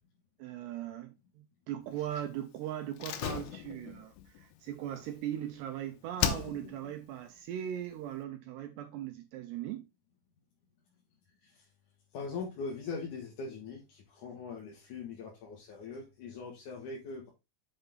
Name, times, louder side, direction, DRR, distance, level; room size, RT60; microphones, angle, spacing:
voice 1, 0.4-9.9, right 11 dB, 80° right, 2.5 m, -39 dB
Slam, 3.0-5.7 6.2-6.9 7.2-7.3, left 9 dB, 85° left, 3.5 m, -36 dB
voice 2, 12.1-17.3, left 4 dB, 50° left, 2.7 m, -41 dB
8.1 x 5.6 x 3.8 m
omnidirectional pair, 5.5 m